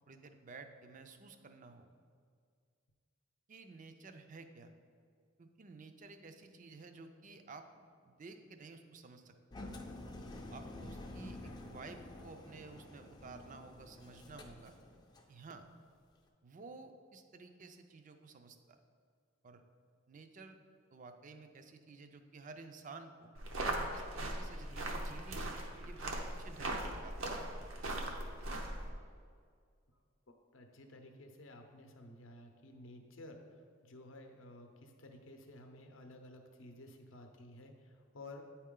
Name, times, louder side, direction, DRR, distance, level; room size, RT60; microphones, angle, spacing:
voice 1, 0.0-1.9 3.5-4.7 5.4-9.7 10.5-14.7 15.3-15.6 16.4-18.8 19.4-19.6 20.1-20.6 20.9-23.3 23.9-25.5 25.8-27.3, right 4 dB, 40° right, 8 dB, 0.4 m, -53 dB
Engine, 9.5-15.3, left 2 dB, 20° left, 0.4 m, -49 dB
sound 1, 23.3-28.9, right 1 dB, 80° right, 0.8 m, -39 dB
voice 2, 29.9-38.4, left 1 dB, 70° left, 4 dB, 0.6 m, -54 dB
9.1 x 4.3 x 3.7 m, 2.1 s
head